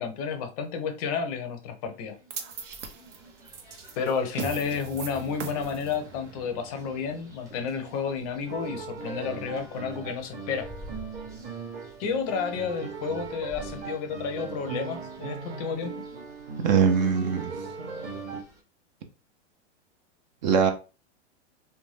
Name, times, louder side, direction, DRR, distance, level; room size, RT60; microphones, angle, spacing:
voice 1, 0.0-2.2 4.0-10.7 12.0-16.0, left 6 dB, 35° left, 7 dB, 0.6 m, -31 dB
sound 1, 2.1-18.6, equal, 10° right, 0.8 m, -50 dB
sound 2, 2.3-8.6, right 5 dB, 90° right, 0.8 m, -41 dB
sound 3, 8.4-18.4, right 4 dB, 70° right, 1.3 m, -38 dB
voice 2, 16.6-17.5 20.4-20.7, right 6 dB, 40° right, 6 dB, 0.5 m, -21 dB
2.5 x 2.2 x 3.2 m, 0.32 s
hypercardioid pair, 145°, 35 cm